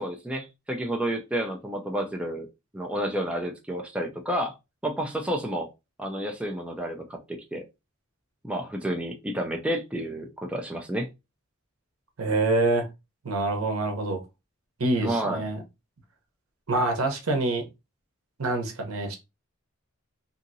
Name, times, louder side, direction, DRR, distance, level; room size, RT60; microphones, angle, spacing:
voice 1, 0.0-2.5 2.7-4.5 4.8-5.7 6.0-7.6 8.4-11.1 15.0-15.4, right 1 dB, 5° right, 0.4 m, -30 dB
voice 2, 12.2-12.9 13.2-14.2 14.8-15.6 16.7-17.6 18.4-19.2, right 2 dB, 80° right, 0.8 m, -26 dB
2.8 x 2.6 x 2.6 m
head